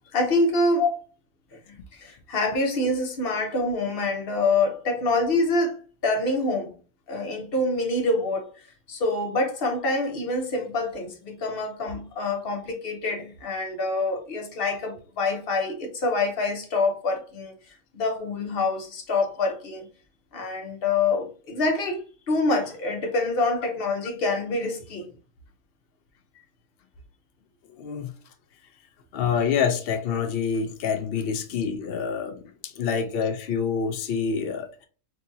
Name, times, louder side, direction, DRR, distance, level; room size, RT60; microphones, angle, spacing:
voice 1, 0.1-0.8 1.7-6.7 7.1-8.6 8.9-17.5 17.9-19.9 20.3-25.1, left 2 dB, 45° left, 0.9 m, -26 dB
voice 2, 27.8-28.1 29.1-32.4 32.6-34.8, left 6 dB, 90° left, 0.5 m, -26 dB
4.1 x 2.8 x 2.6 m
omnidirectional pair, 1.6 m